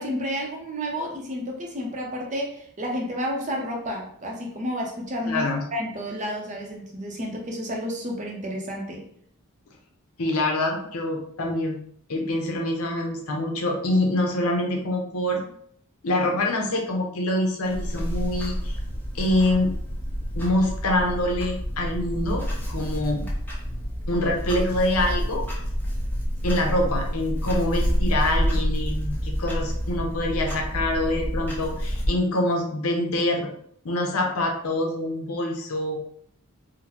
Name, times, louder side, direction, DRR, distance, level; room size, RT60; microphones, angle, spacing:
voice 1, 0.0-5.4 5.7-9.0, equal, 35° right, 0 dB, 0.6 m, -31 dB
voice 2, 5.3-5.6 10.2-11.8 12.1-15.4 16.0-18.8 19.1-19.7 20.4-23.2 24.1-25.4 26.4-33.5 33.8-36.0, left 1 dB, 80° left, 1 dB, 0.7 m, -25 dB
Clock, 17.6-32.1, equal, 10° left, 0.6 m, -28 dB
3.8 x 2.1 x 2.9 m, 0.66 s
head